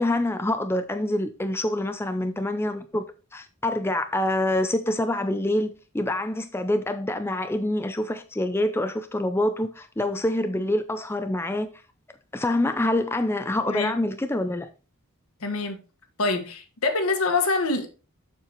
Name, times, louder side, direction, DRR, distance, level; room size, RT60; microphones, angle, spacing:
voice 1, 0.0-3.1 3.3-11.7 12.3-14.7, left 1 dB, 10° left, 0.4 m, -26 dB
voice 2, 15.4-15.8 16.2-17.9, left 3 dB, 80° left, 1.5 m, -25 dB
7.2 x 6.8 x 3.0 m
head